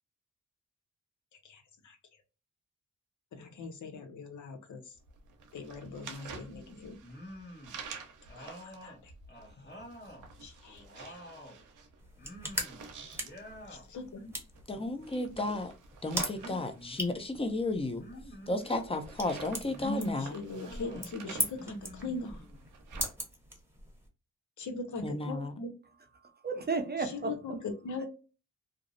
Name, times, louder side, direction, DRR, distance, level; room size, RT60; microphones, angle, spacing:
voice 1, 1.4-2.0 3.3-5.0 5.5-7.0 8.4-9.1 9.6-9.7 10.4-11.3 13.7-14.4 19.8-22.5 24.6-25.7 27.3-27.4 27.8-28.0, left 3 dB, 75° left, 0.7 m, -40 dB
sound 1, 5.0-23.1, right 5 dB, 85° right, 0.6 m, -49 dB
sound 2, 7.0-7.8 8.3-10.3 10.6-11.6 12.2-12.9 13.1-13.9 14.7-15.5 16.3-17.2 18.0-18.7 19.4-20.0 20.5-21.1 21.5-22.6, equal, 35° left, 1.3 m, -49 dB
sound 3, 12.0-24.1, right 1 dB, 10° right, 1.0 m, -41 dB
voice 2, 14.7-15.7 16.0-18.0 18.5-20.3 25.0-25.5, left 2 dB, 20° left, 0.6 m, -33 dB
voice 3, 26.2-27.6 28.0-28.1, right 4 dB, 30° right, 0.6 m, -34 dB
2.5 x 2.0 x 2.5 m
cardioid pair, 50°, 31 cm